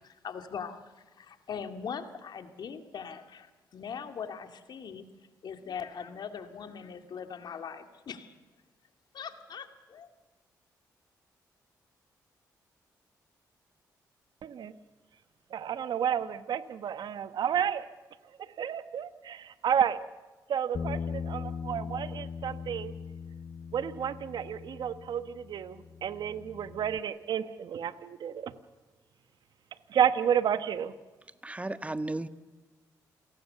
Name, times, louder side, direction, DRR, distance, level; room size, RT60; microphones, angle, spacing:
voice 1, 0.0-5.0 5.4-8.3 9.1-10.1, left 6 dB, 65° left, 7 dB, 2.4 m, -41 dB
voice 2, 14.4-14.7 15.5-17.9 18.4-20.0 20.5-22.9 23.7-28.5 29.9-30.9, right 9 dB, 70° right, 12 dB, 1.2 m, -31 dB
Bass guitar, 20.7-27.0, left 6 dB, 45° left, 0.9 m, -40 dB
voice 3, 31.4-32.3, right 2 dB, 15° right, 11 dB, 1.6 m, -34 dB
28.0 x 18.5 x 6.9 m, 1.2 s
supercardioid pair, 55°, 8 cm